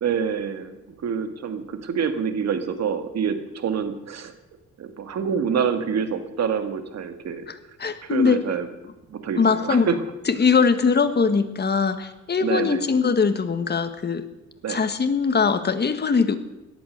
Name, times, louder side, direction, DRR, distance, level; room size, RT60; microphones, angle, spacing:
voice 1, 0.0-4.3 4.8-7.4 8.0-8.7 9.1-10.0 12.4-12.8 14.6-14.8, right 7 dB, 60° right, 8 dB, 2.0 m, -27 dB
voice 2, 7.5-8.4 9.4-9.9 10.3-14.2 14.7-16.4, left 5 dB, 35° left, 9 dB, 1.7 m, -21 dB
17.5 x 11.5 x 6.7 m, 0.96 s
cardioid pair, 90°, 30 cm